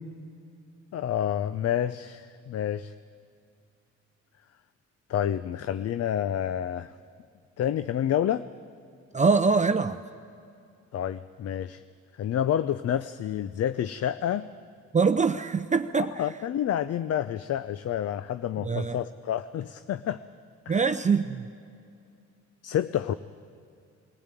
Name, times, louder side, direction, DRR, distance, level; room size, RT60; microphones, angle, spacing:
voice 1, 0.9-2.9 5.1-6.9 7.6-8.4 10.9-11.8 12.2-14.5 16.0-20.2 20.7-20.9 22.6-23.1, left 10 dB, 55° left, 14 dB, 0.6 m, -29 dB
voice 2, 9.1-10.0 14.9-16.1 18.6-19.0 20.7-21.4, right 5 dB, 25° right, 9 dB, 0.6 m, -23 dB
22.0 x 15.5 x 9.1 m, 2.5 s
cardioid pair, 90°, 30 cm